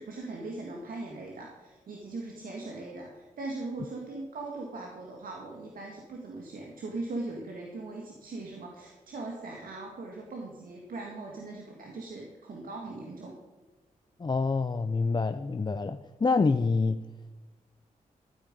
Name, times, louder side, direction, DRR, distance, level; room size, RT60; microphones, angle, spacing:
voice 1, 0.0-13.4, right 2 dB, 75° right, 0 dB, 1.9 m, -40 dB
voice 2, 14.2-17.0, left 4 dB, 30° left, 9 dB, 0.6 m, -27 dB
13.5 x 5.0 x 9.0 m, 1.2 s
cardioid pair, 55°, 15 cm